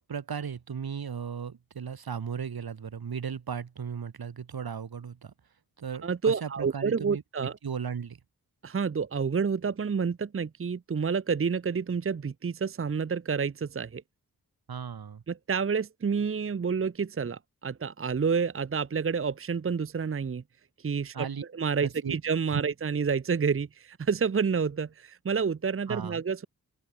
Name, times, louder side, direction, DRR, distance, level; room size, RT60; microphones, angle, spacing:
voice 1, 0.0-5.3 5.8-8.2 14.7-15.2 21.1-21.4 21.8-22.2 22.5-22.6 25.9-26.2, right 7 dB, 80° right, 5.3 m, -36 dB
voice 2, 6.0-7.6 8.6-14.0 15.3-20.4 20.8-21.3 21.5-26.5, right 6 dB, 35° right, 0.8 m, -29 dB
open air
wide cardioid pair, 80°, 36 cm